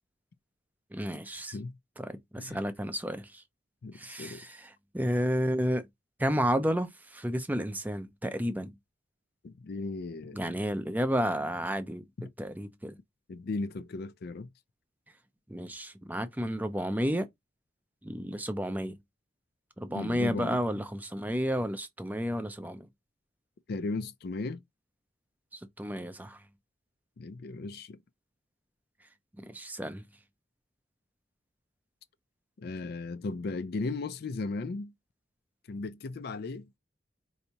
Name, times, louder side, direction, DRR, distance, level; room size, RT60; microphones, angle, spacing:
voice 1, 0.9-1.6 2.0-3.4 3.9-5.8 6.2-8.7 10.3-12.0 12.4-13.0 15.5-17.3 18.0-19.0 19.8-22.9 25.5-26.4 29.4-30.0, equal, 10° right, 0.5 m, -31 dB
voice 2, 3.8-4.5 9.4-10.5 12.2-12.3 13.3-14.5 19.9-20.6 23.7-24.6 27.2-28.0 32.6-34.9 35.7-36.8, left 3 dB, 55° left, 0.4 m, -36 dB
4.4 x 2.7 x 2.8 m
head